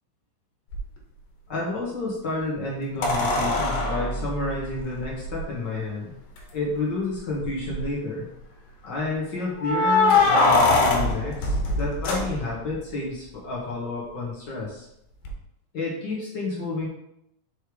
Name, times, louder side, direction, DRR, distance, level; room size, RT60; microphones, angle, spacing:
sound 1, 0.7-0.8 3.0-5.4 6.4-6.5 6.8-6.9 7.4-7.9 9.6-12.8 15.2-15.3, left 3 dB, 85° left, 2.8 m, -22 dB
voice 1, 1.5-6.1 6.5-8.3 8.8-14.9 15.7-16.9, left 2 dB, 60° left, -5 dB, 1.2 m, -30 dB
6.6 x 3.3 x 4.7 m, 0.80 s
omnidirectional pair, 4.1 m